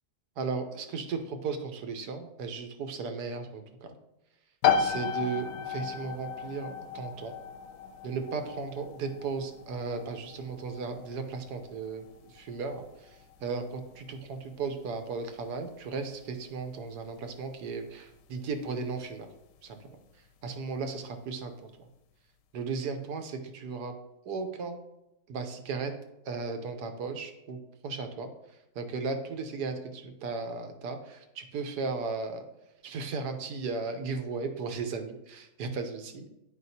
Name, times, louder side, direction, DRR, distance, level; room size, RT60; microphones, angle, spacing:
voice 1, 0.4-3.9 4.8-7.3 8.0-19.3 19.6-20.0 20.4-21.7 22.5-23.9 24.3-24.8 25.3-25.9 26.3-28.3 28.7-32.4 32.8-36.3, right 4 dB, 80° right, 6 dB, 1.4 m, -36 dB
sound 1, 4.6-19.1, left 7 dB, 85° left, 1.2 m, -35 dB
9.5 x 5.0 x 2.8 m, 0.90 s
omnidirectional pair, 1.7 m